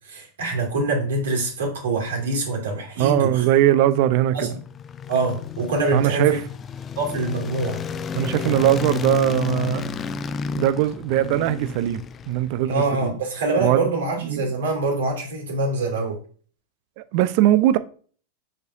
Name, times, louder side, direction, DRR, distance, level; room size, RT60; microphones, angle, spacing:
voice 1, 0.0-3.4 4.3-4.6 5.1-6.4 7.0-7.8 12.7-16.2, right 2 dB, 60° right, 2.6 m, -25 dB
voice 2, 3.0-4.5 5.9-6.4 8.1-9.9 10.6-13.2 13.6-13.9 14.2-14.5 17.0-17.8, right 13 dB, 45° right, 0.5 m, -20 dB
sound 1, 4.3-12.7, left 7 dB, 25° left, 0.4 m, -31 dB
6.5 x 6.5 x 2.7 m
figure-of-eight pair, 90°, 0 cm